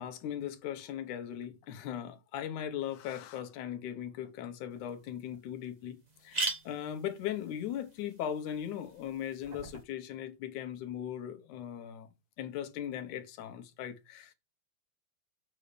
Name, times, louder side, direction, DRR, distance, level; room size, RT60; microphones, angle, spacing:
voice 1, 0.0-12.1 12.4-14.3, left 10 dB, 85° left, 2.5 m, -39 dB
sound 1, 4.8-4.9 5.3-5.4 5.6-5.7 6.1-9.8, right 2 dB, 35° right, 0.6 m, -40 dB
7.8 x 5.5 x 5.1 m
omnidirectional pair, 3.4 m